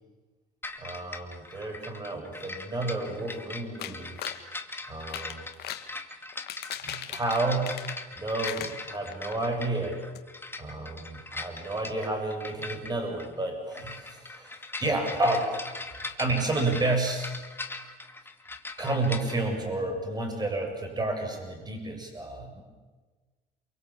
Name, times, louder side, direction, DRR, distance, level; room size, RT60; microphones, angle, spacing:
sound 1, 0.6-19.4, left 2 dB, 15° left, 2.4 m, -40 dB
voice 1, 0.8-4.2 4.9-5.5 6.8-7.7 8.1-10.0 10.6-17.3 18.8-22.6, right 2 dB, 25° right, 4 dB, 7.7 m, -31 dB
sound 2, 3.8-4.4 5.0-5.9 6.3-8.2 8.4-9.4 9.7-9.8 10.1-10.2, left 12 dB, 70° left, 2.0 m, -38 dB
28.5 x 23.0 x 8.8 m, 1.3 s
cardioid pair, 110°, 17 cm